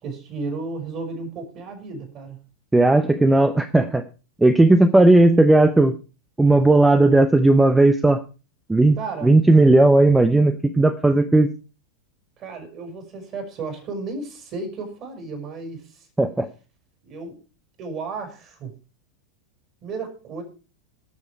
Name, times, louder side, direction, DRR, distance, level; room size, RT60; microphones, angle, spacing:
voice 1, 0.0-2.4 9.0-9.3 12.4-16.1 17.0-17.4 17.8-18.7 19.8-20.4, right 4 dB, 35° right, 5 dB, 4.6 m, -33 dB
voice 2, 2.7-4.0 4.4-6.0 6.4-8.2 8.7-9.0 9.2-11.5 16.2-16.5, right 2 dB, 5° right, 10 dB, 0.7 m, -15 dB
17.5 x 7.0 x 4.7 m, 0.33 s
figure-of-eight pair, 90°, 0 cm